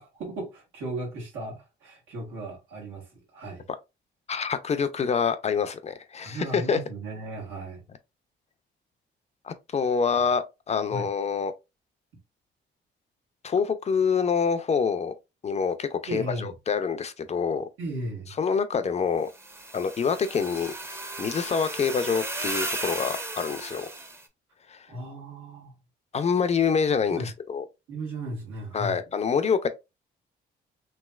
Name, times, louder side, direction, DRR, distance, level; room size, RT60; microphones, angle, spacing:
voice 1, 0.0-3.7 6.2-7.8 10.1-10.2 10.9-11.1 16.1-16.5 17.8-18.3 24.9-25.8 27.1-27.3 27.9-29.0, right 2 dB, 90° right, 1.5 m, -36 dB
voice 2, 4.3-6.8 9.4-11.5 13.4-15.1 15.4-17.7 18.4-19.3 19.7-20.7 21.2-23.9 24.7-24.9 26.1-27.6 28.7-29.7, left 6 dB, 35° left, 0.4 m, -26 dB
sound 1, 19.3-24.2, right 2 dB, 10° right, 0.6 m, -35 dB
3.1 x 2.9 x 2.3 m
cardioid pair, 90°, 20 cm